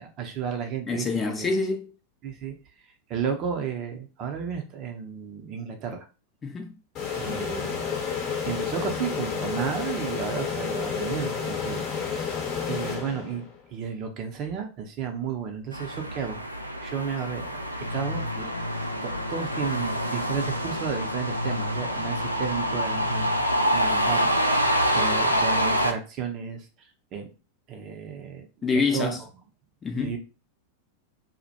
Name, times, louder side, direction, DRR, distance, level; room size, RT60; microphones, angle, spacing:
voice 1, 0.0-1.5 2.2-2.5 3.1-6.0 7.1-7.8 8.5-13.4 13.7-16.4 16.8-17.6 17.9-18.5 19.0-23.3 23.7-26.7 27.1-27.3 27.7-28.5 28.9-29.1 30.0-30.2, right 7 dB, 35° right, 0.6 m, -33 dB
voice 2, 0.9-1.9 6.4-6.8 28.6-29.2 29.8-30.2, left 4 dB, 20° left, 0.5 m, -26 dB
sound 1, 6.9-13.6, left 6 dB, 35° left, 0.9 m, -30 dB
sound 2, 15.7-25.9, equal, 90° right, 0.3 m, -27 dB
sound 3, 17.8-23.4, left 2 dB, 80° left, 0.4 m, -35 dB
2.1 x 2.1 x 2.8 m
figure-of-eight pair, 90°, 0 cm